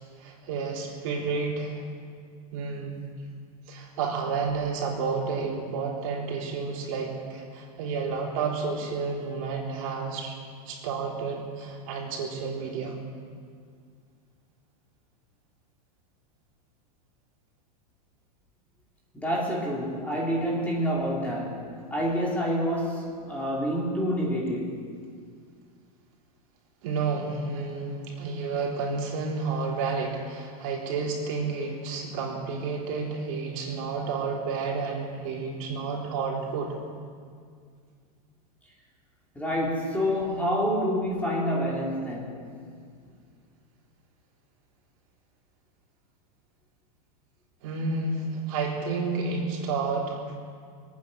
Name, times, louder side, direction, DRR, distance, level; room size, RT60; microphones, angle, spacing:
voice 1, 0.2-1.8 2.5-3.0 3.7-10.4 10.7-12.9 26.8-36.8 47.6-50.4, right 4 dB, 60° right, -2 dB, 3.8 m, -30 dB
voice 2, 19.1-24.9 39.3-42.4, equal, 5° left, -4 dB, 2.7 m, -28 dB
24.5 x 9.3 x 6.3 m, 2.1 s
supercardioid pair, 150°, 20 cm